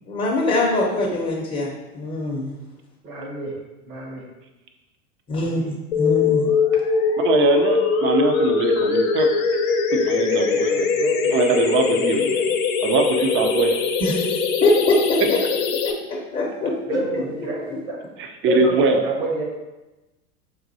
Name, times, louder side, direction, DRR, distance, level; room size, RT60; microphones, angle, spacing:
voice 1, 0.1-2.6 5.3-6.4 14.0-14.2 14.6-15.4 16.1-17.2, left 2 dB, 20° left, -2 dB, 0.7 m, -23 dB
voice 2, 3.0-3.6 3.9-4.2 5.5-5.6 10.1-10.5 10.8-11.3 11.9-12.2 16.9-18.0 18.5-19.4, right 1 dB, 65° right, -2 dB, 1.5 m, -28 dB
sound 1, 5.9-15.9, left 5 dB, 65° left, 0.7 m, -21 dB
voice 3, 7.2-9.3 9.9-10.8 11.3-12.3 12.8-13.8 18.2-19.0, right 4 dB, 30° right, 4 dB, 0.5 m, -22 dB
6.2 x 2.6 x 2.6 m, 1.1 s
hypercardioid pair, 85°, 44 cm